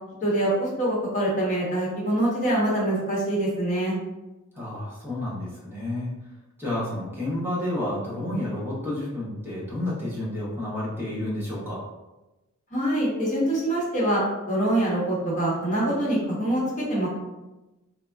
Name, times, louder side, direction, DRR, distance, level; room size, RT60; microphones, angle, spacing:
voice 1, 0.2-4.0 12.7-17.1, right 1 dB, 35° left, -7 dB, 1.0 m, -24 dB
voice 2, 4.5-6.1 6.6-11.9, left 1 dB, 10° right, -7 dB, 0.8 m, -30 dB
3.5 x 2.1 x 2.3 m, 1.0 s
head